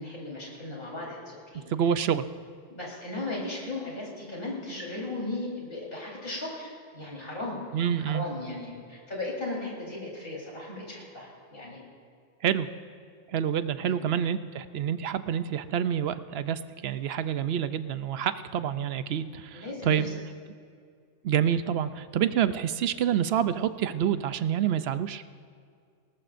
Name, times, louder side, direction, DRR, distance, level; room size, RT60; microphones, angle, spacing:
voice 1, 0.0-2.0 2.7-11.8 13.8-14.0 19.5-20.1, left 2 dB, 45° left, -4 dB, 4.2 m, -37 dB
voice 2, 1.7-2.3 7.7-8.3 12.4-12.7 13.3-20.1 21.2-25.2, right 9 dB, 65° right, 12 dB, 0.7 m, -27 dB
20.0 x 18.5 x 2.6 m, 2.2 s
omnidirectional pair, 1.3 m